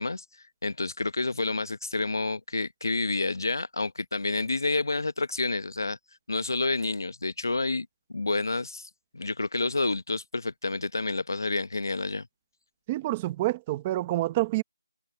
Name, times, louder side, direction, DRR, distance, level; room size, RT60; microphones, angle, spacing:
voice 1, 0.0-6.0 6.3-7.9 8.1-12.3, left 3 dB, 60° left, 1.0 m, -29 dB
voice 2, 12.9-14.6, right 17 dB, 10° right, 0.7 m, -27 dB
figure-of-eight pair, 175°, 2 cm